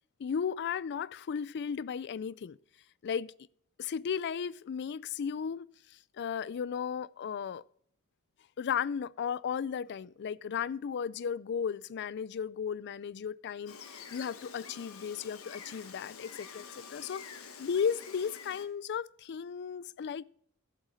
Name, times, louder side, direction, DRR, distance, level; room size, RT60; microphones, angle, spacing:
voice 1, 0.2-2.6 3.0-3.3 3.8-7.6 8.6-20.2, left 7 dB, 55° left, 0.4 m, -35 dB
Gull seagull, 13.7-18.7, left 6 dB, 80° left, 1.3 m, -48 dB
11.5 x 8.1 x 4.1 m
head